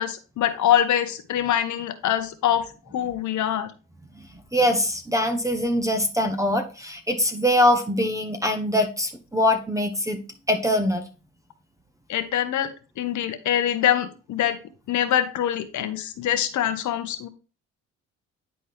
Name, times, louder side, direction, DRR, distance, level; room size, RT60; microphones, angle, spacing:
voice 1, 0.0-3.7 12.1-14.6 14.9-17.3, left 10 dB, 70° left, 10 dB, 1.0 m, -24 dB
voice 2, 4.5-10.2 10.5-11.0, left 1 dB, 10° right, 6 dB, 1.0 m, -23 dB
9.8 x 4.2 x 3.4 m, 0.34 s
cardioid pair, 90°, 30 cm